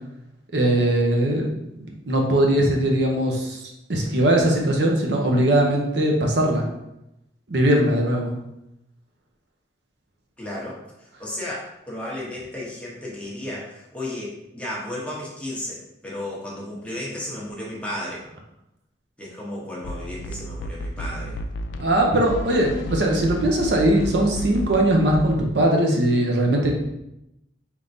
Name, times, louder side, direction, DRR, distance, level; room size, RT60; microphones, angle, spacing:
voice 1, 0.5-1.5 1.7-3.6 3.9-6.7 7.5-8.3 21.8-26.7, right 1 dB, 70° right, 0 dB, 0.7 m, -20 dB
voice 2, 10.4-10.8 11.2-18.2 19.2-21.4, left 1 dB, 5° left, -5 dB, 0.9 m, -33 dB
sound 1, 19.8-25.4, equal, 85° left, 0.4 m, -32 dB
4.4 x 3.6 x 2.6 m, 0.86 s
head